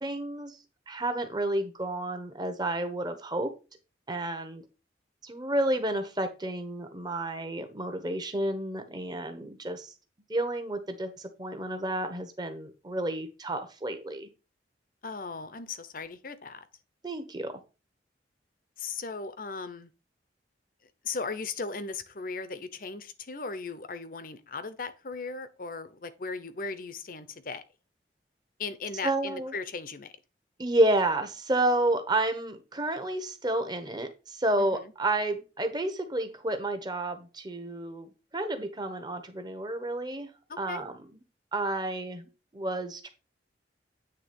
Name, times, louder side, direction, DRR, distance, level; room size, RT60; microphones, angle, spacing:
voice 1, 0.0-0.6 0.9-3.5 4.1-4.6 5.2-9.9 10.3-14.3 17.0-17.5 29.0-29.5 30.6-40.3 40.6-41.0 41.5-43.1, right 1 dB, 25° right, 1.1 m, -30 dB
voice 2, 15.0-16.6 18.8-19.9 21.0-27.6 28.6-30.1 34.6-34.9 40.5-40.8, left 4 dB, 50° left, 0.8 m, -37 dB
9.2 x 3.5 x 5.2 m
head